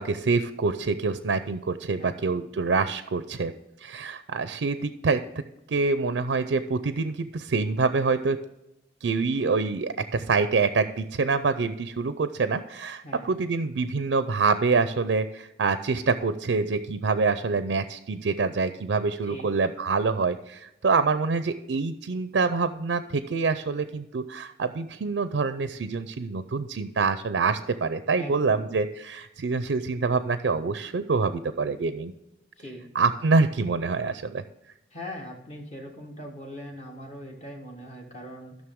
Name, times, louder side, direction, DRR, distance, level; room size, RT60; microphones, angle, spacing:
voice 1, 0.0-3.5 3.8-5.2 5.7-8.4 9.0-32.1 32.9-34.4, right 4 dB, 80° right, 11 dB, 0.5 m, -26 dB
voice 2, 2.0-2.5 13.0-13.4 19.3-19.4 28.1-28.7 32.6-32.9 34.9-38.6, equal, 35° left, 0 dB, 1.5 m, -41 dB
13.0 x 6.4 x 3.6 m, 0.92 s
head